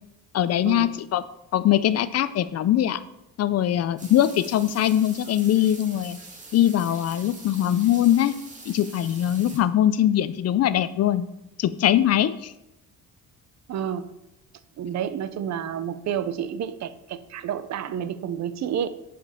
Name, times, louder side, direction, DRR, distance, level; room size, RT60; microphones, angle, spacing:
voice 1, 0.3-1.2 1.5-3.0 3.4-6.2 6.5-8.3 8.7-11.3 11.6-12.5, left 11 dB, 50° left, 0.4 m, -22 dB
sound 1, 4.0-9.6, right 2 dB, 20° right, 1.8 m, -44 dB
voice 2, 13.7-14.1 14.8-18.9, right 9 dB, 55° right, 0.6 m, -30 dB
11.0 x 5.1 x 4.3 m
cardioid pair, 115°, 34 cm